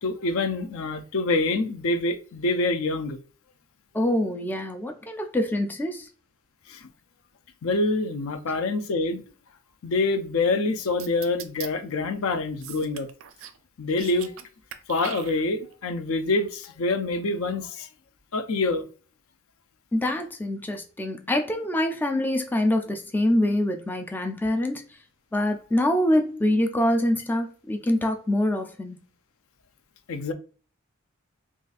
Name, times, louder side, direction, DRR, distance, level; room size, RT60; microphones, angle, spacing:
voice 1, 0.0-3.2 6.7-6.8 7.6-9.2 9.8-13.1 13.8-14.3 14.9-17.9 18.3-18.9 30.1-30.3, left 2 dB, 70° left, 0.5 m, -26 dB
voice 2, 3.9-6.1 19.9-24.8 25.3-29.0, left 1 dB, 10° left, 0.3 m, -25 dB
sound 1, 11.0-11.7 12.6-13.6 13.9-14.4 14.7-15.7, right 10 dB, 65° right, 0.4 m, -40 dB
3.7 x 2.4 x 2.4 m
head